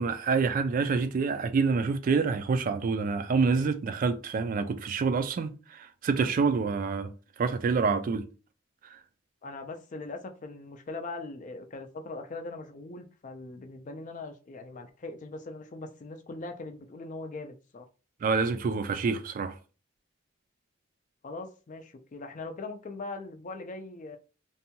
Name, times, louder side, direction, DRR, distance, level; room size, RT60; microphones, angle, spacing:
voice 1, 0.0-7.1 7.4-8.3 8.8-9.0 18.2-19.6, right 4 dB, 45° right, 0.3 m, -27 dB
voice 2, 9.4-17.9 21.2-24.2, left 3 dB, 40° left, 0.4 m, -41 dB
2.6 x 2.2 x 2.8 m
head